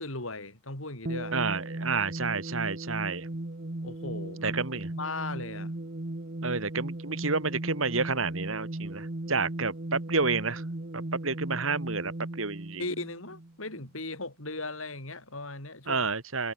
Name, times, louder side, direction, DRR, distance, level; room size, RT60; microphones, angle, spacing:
voice 1, 0.0-1.4 3.8-5.7 12.8-16.1, left 2 dB, 85° left, 7.9 m, -38 dB
sound 1, 1.0-13.9, right 1 dB, 45° right, 1.3 m, -37 dB
voice 2, 1.3-3.3 4.4-4.9 6.4-10.6 10.9-12.8 15.9-16.5, right 4 dB, 80° right, 3.0 m, -30 dB
head